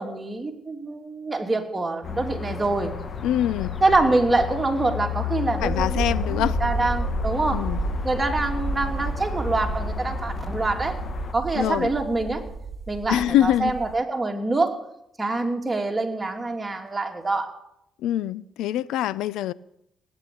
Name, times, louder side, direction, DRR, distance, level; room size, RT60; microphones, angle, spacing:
voice 1, 0.0-2.9 3.8-7.6 8.0-11.0 11.3-12.4 12.9-14.8 15.2-17.5, right 2 dB, 20° right, 2.8 m, -25 dB
sound 1, 2.0-11.3, left 9 dB, 45° left, 1.3 m, -32 dB
voice 2, 3.2-3.8 5.6-6.6 7.5-7.8 11.6-11.9 13.1-13.7 18.0-19.5, left 12 dB, 90° left, 0.5 m, -24 dB
sound 2, 5.6-14.0, right 4 dB, 35° right, 3.0 m, -31 dB
18.0 x 9.3 x 8.5 m
cardioid pair, 90°, 0 cm